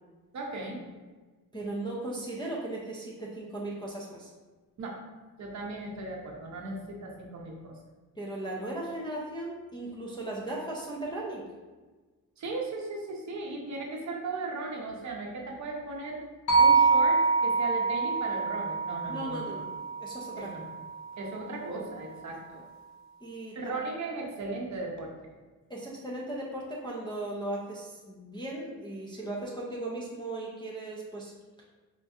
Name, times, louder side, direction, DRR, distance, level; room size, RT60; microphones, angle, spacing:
voice 1, 0.3-0.8 4.8-5.0 5.4-7.8 12.4-16.2 16.6-19.5 20.4-20.7 21.2-22.6 23.5-25.1, right 3 dB, 50° right, -1 dB, 0.6 m, -37 dB
voice 2, 1.5-4.3 8.2-11.5 19.1-19.7 20.0-20.5 23.2-23.8 25.7-31.3, right 1 dB, 15° left, -5 dB, 0.3 m, -37 dB
sound 1, 16.5-20.7, right 4 dB, 45° left, 0.7 m, -25 dB
4.3 x 2.6 x 2.3 m, 1.3 s
wide cardioid pair, 170°, 38 cm